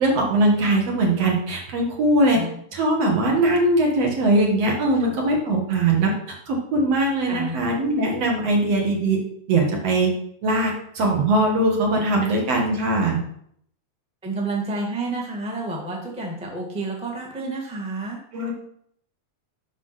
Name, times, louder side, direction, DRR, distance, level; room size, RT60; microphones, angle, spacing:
voice 1, 0.0-2.4 2.7-6.2 6.5-9.2 9.5-10.1 10.4-13.2 18.3-18.5, right 2 dB, 60° right, 0 dB, 2.8 m, -21 dB
voice 2, 7.3-7.6 14.2-18.2, right 2 dB, 5° right, -2 dB, 1.0 m, -29 dB
7.4 x 6.1 x 5.8 m, 0.68 s
omnidirectional pair, 3.4 m